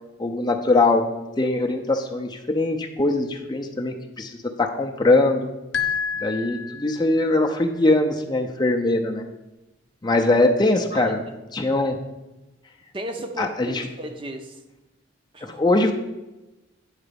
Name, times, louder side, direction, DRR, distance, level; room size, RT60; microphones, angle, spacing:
voice 1, 0.2-1.0 1.4-5.5 6.2-9.2 10.0-11.2 11.5-12.0 13.4-13.9 15.4-15.9, left 2 dB, 20° left, 3 dB, 0.5 m, -21 dB
sound 1, 5.7-7.3, left 7 dB, 65° left, 0.8 m, -29 dB
voice 2, 12.9-14.6 15.3-15.6, right 1 dB, 25° right, 5 dB, 0.6 m, -34 dB
8.9 x 3.9 x 6.8 m, 1.0 s
head